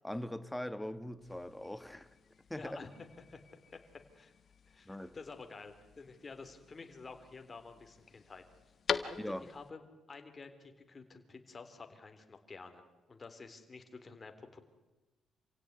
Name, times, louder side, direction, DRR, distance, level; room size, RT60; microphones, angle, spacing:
voice 1, 0.0-2.1 2.5-2.8 4.9-5.2 9.2-9.5, left 1 dB, 5° left, 1.5 m, -41 dB
sound 1, 1.2-9.7, left 6 dB, 50° left, 1.5 m, -45 dB
voice 2, 2.6-3.4 3.7-3.8 4.1-4.3 4.7-8.4 9.0-14.6, left 4 dB, 30° left, 3.6 m, -50 dB
27.5 x 16.5 x 9.7 m
cardioid pair, 90°, 0 cm